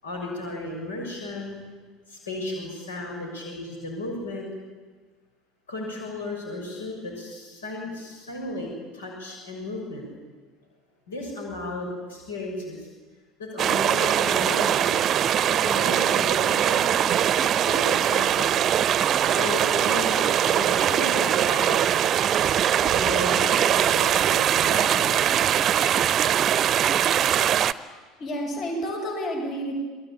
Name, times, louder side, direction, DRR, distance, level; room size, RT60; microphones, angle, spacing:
voice 1, 0.0-1.6 2.1-4.5 5.7-10.1 11.1-12.9 13.4-14.9 15.4-17.2 17.6-18.6 19.3-21.8 22.7-25.5, left 2 dB, 75° left, 0 dB, 6.8 m, -34 dB
sound 1, 13.6-27.7, right 10 dB, 40° right, 0.8 m, -22 dB
voice 2, 27.9-29.7, equal, 45° left, 2 dB, 7.6 m, -30 dB
28.0 x 21.0 x 8.7 m, 1.4 s
figure-of-eight pair, 70°, 0 cm